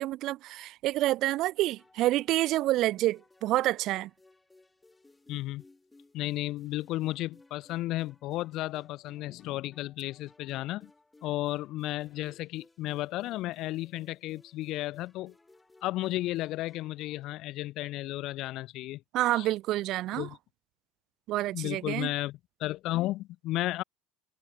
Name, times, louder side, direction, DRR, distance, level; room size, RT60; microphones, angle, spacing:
voice 1, 0.0-4.1 19.1-20.3 21.3-22.1, right 16 dB, 45° right, 0.7 m, -28 dB
sound 1, 1.6-17.5, left 2 dB, 10° left, 7.4 m, -61 dB
voice 2, 5.3-5.6 6.1-10.9 11.2-15.3 15.8-19.0 19.3-19.5 20.2-20.4 21.5-23.8, left 17 dB, 45° left, 0.4 m, -33 dB
cardioid pair, 155°, 0 cm